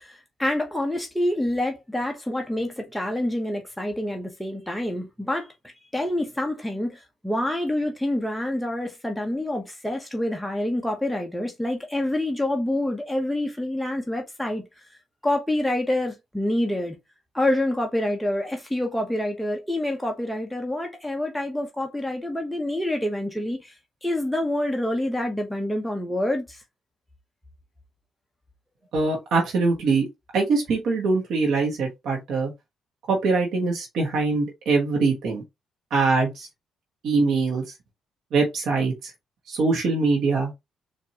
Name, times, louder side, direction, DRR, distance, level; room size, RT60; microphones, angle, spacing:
voice 1, 0.0-5.5 5.9-14.6 14.9-15.0 15.2-17.0 17.3-23.8 24.0-26.6, left 1 dB, ahead, 0.7 m, -27 dB
voice 2, 28.9-30.0 30.3-32.5 33.1-35.4 35.9-36.5 37.0-37.6 38.3-39.1 39.5-40.5, right 3 dB, 70° right, 1.1 m, -23 dB
4.2 x 2.5 x 2.8 m
cardioid pair, 90°, 0 cm